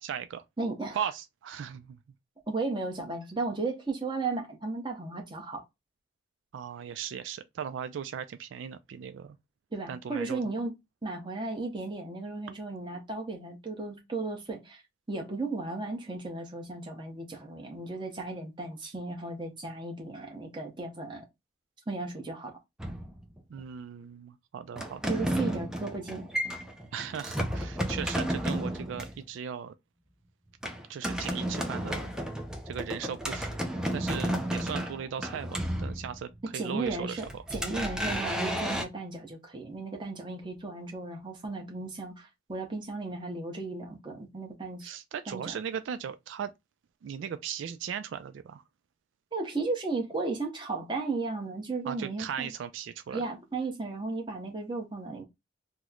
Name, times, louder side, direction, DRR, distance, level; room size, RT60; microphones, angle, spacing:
voice 1, 0.0-0.4 0.9-2.0 6.5-9.4 9.9-10.4 23.5-25.1 26.9-29.7 30.9-32.1 32.7-33.6 33.9-37.4 44.8-46.5 47.0-48.6 51.9-53.2, right 8 dB, 80° right, 0.3 m, -38 dB
voice 2, 0.6-1.0 2.5-5.6 9.7-10.7 11.0-14.8 15.1-21.2 21.9-22.6 25.1-26.3 36.5-44.9 45.3-45.5 49.3-52.5 53.1-55.2, right 3 dB, 25° right, 0.8 m, -35 dB
sound 1, 22.8-23.6 24.8-29.2 30.6-36.4 36.9-38.8, equal, 5° right, 0.4 m, -32 dB
3.0 x 2.1 x 3.6 m
head